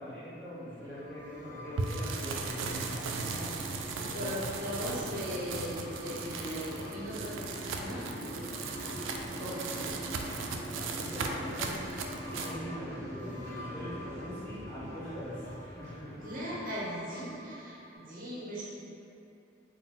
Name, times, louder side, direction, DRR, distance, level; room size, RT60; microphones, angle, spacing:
voice 1, 0.0-3.5 4.0-4.5 10.6-16.3, left 1 dB, 10° left, -13 dB, 1.1 m, -42 dB
sound 1, 0.7-17.3, equal, 15° right, 0.6 m, -44 dB
sound 2, 0.9-11.7 12.0-17.9, left 1 dB, 45° left, 0.7 m, -52 dB
sound 3, 1.8-12.6, right 4 dB, 80° right, 0.3 m, -38 dB
voice 2, 4.0-9.1 9.4-9.9 16.1-18.6, equal, 45° right, -7 dB, 0.8 m, -39 dB
3.8 x 2.3 x 3.6 m, 2.8 s
head